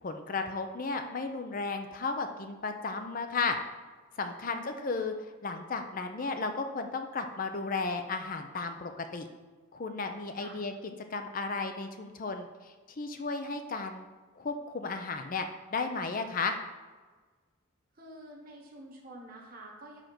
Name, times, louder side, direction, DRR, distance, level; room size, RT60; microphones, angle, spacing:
voice 1, 0.0-3.6 4.2-5.1 5.4-9.3 9.7-10.7 11.1-14.0 14.4-16.6, left 4 dB, 40° left, 6 dB, 0.5 m, -34 dB
voice 2, 4.4-5.0 10.4-10.6 18.0-20.0, right 1 dB, 40° right, -1 dB, 1.2 m, -48 dB
5.0 x 4.9 x 6.0 m, 1.4 s
head